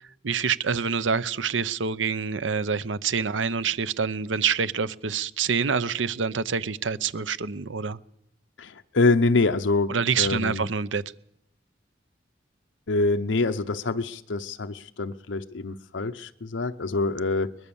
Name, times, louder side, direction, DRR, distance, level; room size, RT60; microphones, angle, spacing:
voice 1, 0.0-8.0 9.9-11.0, right 6 dB, 90° right, 0.7 m, -26 dB
voice 2, 8.6-10.6 12.9-17.6, left 3 dB, 85° left, 0.8 m, -25 dB
22.5 x 20.5 x 7.1 m
head